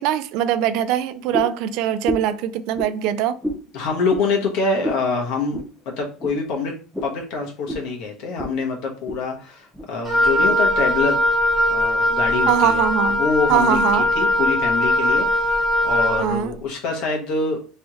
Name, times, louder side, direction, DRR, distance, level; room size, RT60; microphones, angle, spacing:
voice 1, 0.0-3.4 12.5-13.2 13.5-14.1 16.2-16.5, right 10 dB, 60° right, 0.4 m, -22 dB
sound 1, 1.3-1.6 2.0-2.4 2.7-2.9 3.4-3.6 4.1-4.3 4.8-5.0 5.5-5.7 6.2-6.4 6.9-7.2 7.7-7.9 8.4-8.5 8.9-9.2 9.7-9.9 10.5-10.6, equal, ahead, 0.6 m, -28 dB
voice 2, 3.7-6.7 7.0-11.2 11.7-12.8 13.2-17.6, left 4 dB, 60° left, 1.3 m, -25 dB
Wind instrument woodwind instrument, 10.1-16.3, left 1 dB, 20° right, 1.4 m, -20 dB
3.4 x 3.2 x 3.0 m
cardioid pair, 165°, 0 cm